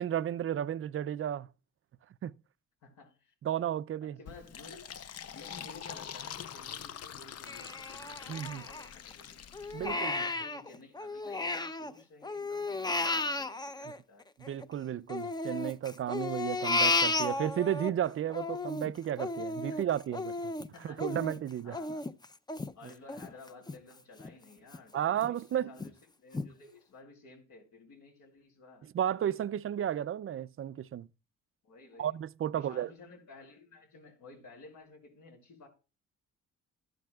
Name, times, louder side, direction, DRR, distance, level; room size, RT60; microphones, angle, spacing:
voice 1, 0.0-1.5 2.2-2.3 3.4-4.2 8.3-8.7 9.7-10.1 14.4-20.5 20.8-21.8 24.9-25.7 28.9-31.1 32.0-32.9, right 10 dB, 45° right, 0.5 m, -33 dB
voice 2, 2.8-3.3 4.0-5.0 5.3-9.4 9.7-14.2 19.7-19.8 20.7-21.0 21.6-22.0 22.8-25.0 25.5-25.9 26.2-28.9 31.6-32.1 32.5-35.7, left 3 dB, 75° left, 5.9 m, -54 dB
Fill (with liquid), 4.3-10.0, left 8 dB, 55° left, 0.8 m, -45 dB
Crying sobbing, 7.5-9.1 9.5-11.9 12.2-14.7 15.1-17.9 18.3-23.8 24.2-24.3 24.7-25.3 25.8-25.9 26.3-26.5, left 3 dB, 15° left, 0.6 m, -34 dB
13.5 x 11.5 x 2.4 m
cardioid pair, 90°, 30 cm